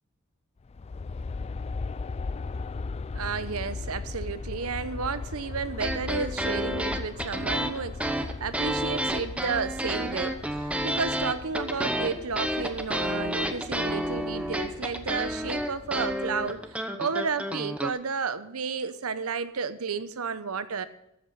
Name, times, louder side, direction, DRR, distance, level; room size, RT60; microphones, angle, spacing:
Aircraft, 0.6-16.7, left 4 dB, 30° left, 0.3 m, -38 dB
voice 1, 3.1-20.9, right 5 dB, 90° right, 14 dB, 0.8 m, -32 dB
sound 1, 5.7-17.9, equal, 5° right, 0.9 m, -30 dB
13.5 x 7.9 x 5.6 m, 0.83 s
head